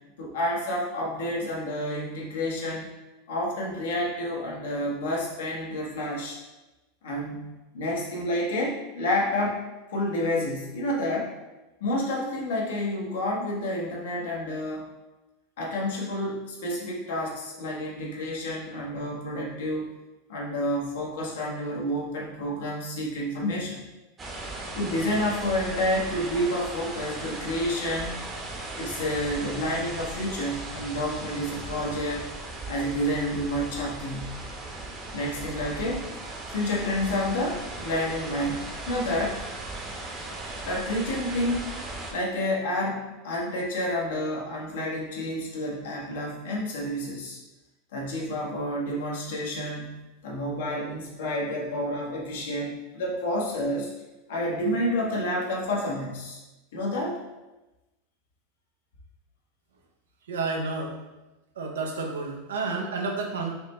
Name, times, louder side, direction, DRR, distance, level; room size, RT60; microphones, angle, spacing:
voice 1, 0.2-2.9 3.3-6.4 7.0-7.5 7.7-9.6 9.9-11.3 11.8-14.8 15.6-19.9 20.3-23.8 24.7-28.2 28.8-32.3 32.7-34.4 35.1-36.0 36.5-39.4 40.7-41.7 42.1-47.4 47.9-50.0 50.2-53.9 54.3-56.4 56.7-57.2, left 1 dB, 80° left, -3 dB, 1.1 m, -29 dB
sound 1, 24.2-42.1, right 2 dB, 25° right, 0.8 m, -37 dB
voice 2, 60.3-61.0 61.6-63.5, right 3 dB, 90° right, 1 dB, 0.7 m, -30 dB
4.8 x 2.1 x 3.0 m, 1.1 s
hypercardioid pair, 110°, 0 cm